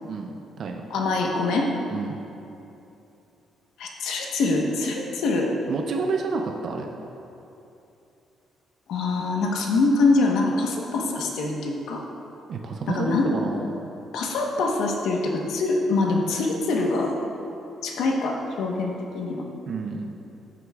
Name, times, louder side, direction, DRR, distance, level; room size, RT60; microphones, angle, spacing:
voice 1, 0.0-0.9 1.9-2.2 5.7-6.9 12.5-13.9 19.7-20.2, right 4 dB, 45° right, 2 dB, 0.5 m, -30 dB
voice 2, 0.9-1.7 3.8-5.5 8.9-12.0 12.9-13.3 14.1-17.1 17.8-19.4, left 3 dB, 75° left, 0 dB, 1.1 m, -24 dB
13.5 x 7.9 x 2.4 m, 2.9 s
cardioid pair, 170°, 0 cm